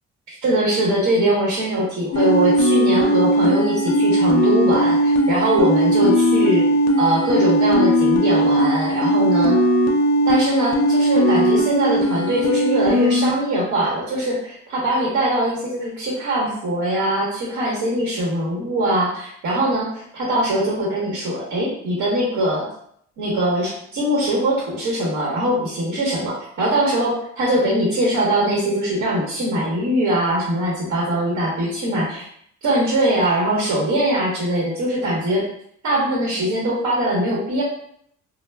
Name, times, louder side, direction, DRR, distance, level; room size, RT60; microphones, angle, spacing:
voice 1, 0.3-6.7 7.0-9.6 10.3-22.7 23.2-32.3 32.6-35.5 35.8-37.6, right 1 dB, 70° right, -5 dB, 0.9 m, -21 dB
sound 1, 2.1-13.3, equal, 60° left, 0.5 m, -18 dB
2.1 x 2.0 x 3.3 m, 0.67 s
cardioid pair, 90°, 30 cm